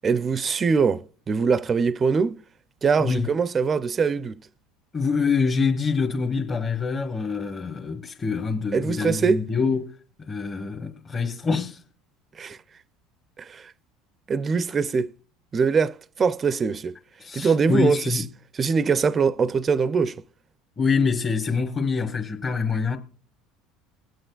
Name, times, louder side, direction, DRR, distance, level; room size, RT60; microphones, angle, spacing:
voice 1, 0.0-2.4 2.8-4.4 8.7-9.4 12.4-12.6 13.4-13.7 14.3-15.1 15.5-17.0 17.3-18.2 18.6-20.2, right 5 dB, 30° right, 0.4 m, -23 dB
voice 2, 3.0-3.3 4.9-9.9 10.2-11.8 17.2-18.2 20.8-23.0, left 5 dB, 30° left, 1.3 m, -25 dB
20.5 x 7.6 x 2.4 m
hypercardioid pair, 80°, 0 cm